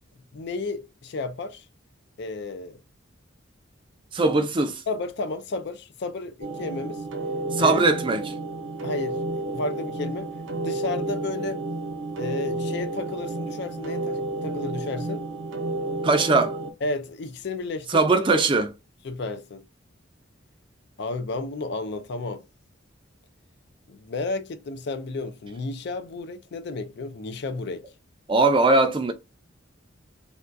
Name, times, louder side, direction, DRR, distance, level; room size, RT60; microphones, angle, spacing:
voice 1, 0.3-1.6 2.2-2.8 4.9-7.0 7.6-7.8 8.8-11.6 12.2-15.3 16.8-18.0 19.0-19.6 21.0-22.4 23.9-27.9, left 3 dB, 60° left, 0.4 m, -32 dB
voice 2, 4.1-4.8 7.5-8.3 16.0-16.6 17.9-18.7 28.3-29.1, right 3 dB, 25° right, 0.5 m, -20 dB
sound 1, 6.4-16.7, right 2 dB, 80° right, 0.7 m, -31 dB
3.5 x 2.3 x 2.5 m
head